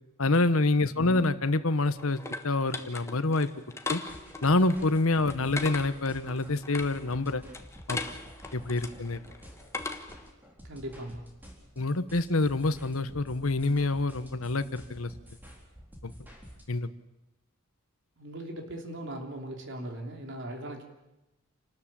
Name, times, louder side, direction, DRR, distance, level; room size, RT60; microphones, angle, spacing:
voice 1, 0.2-3.5 3.9-4.0 4.4-7.4 7.9-8.0 8.5-9.2 11.8-15.1 16.0-16.1 16.7-16.9, left 2 dB, 75° left, 13 dB, 1.2 m, -27 dB
sound 1, 1.5-10.3, left 3 dB, 15° left, 1.3 m, -40 dB
sound 2, 4.1-16.6, equal, 10° right, 4.0 m, -50 dB
voice 2, 10.6-11.3 18.2-20.8, right 1 dB, 60° right, 3 dB, 3.3 m, -39 dB
28.5 x 13.0 x 8.8 m, 0.99 s
head